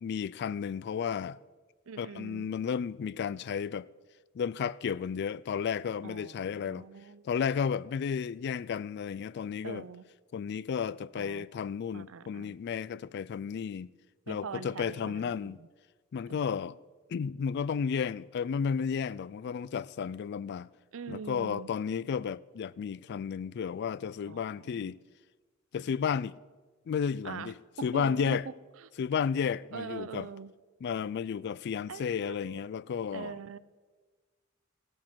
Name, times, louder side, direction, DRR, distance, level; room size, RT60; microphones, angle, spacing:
voice 1, 0.0-1.4 2.0-3.9 4.4-6.8 7.2-9.8 10.3-13.9 14.3-15.6 16.1-16.8 17.1-20.7 21.1-25.0 25.7-26.3 26.9-27.5 27.8-28.4 29.0-30.3 30.8-33.3, left 7 dB, 55° left, 0.3 m, -33 dB
voice 2, 1.9-2.5 6.0-7.3 9.6-10.0 11.2-11.5 11.9-12.6 14.3-15.7 16.3-16.7 20.9-21.7 24.3-24.9 27.2-28.9 29.7-30.5 31.9-32.6 33.1-33.6, right 5 dB, 75° right, 0.5 m, -43 dB
16.0 x 8.7 x 6.1 m
head